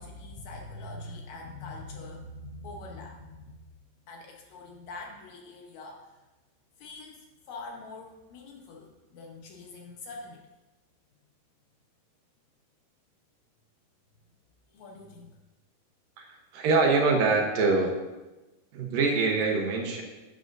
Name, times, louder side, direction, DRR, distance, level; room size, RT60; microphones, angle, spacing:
voice 1, 0.0-3.7 4.1-6.2 6.8-10.4 14.7-15.3, left 2 dB, 85° left, -1 dB, 1.6 m, -44 dB
voice 2, 16.2-17.9 18.7-20.0, right 3 dB, 70° right, 1 dB, 2.3 m, -24 dB
11.5 x 9.0 x 2.6 m, 1.1 s
omnidirectional pair, 4.7 m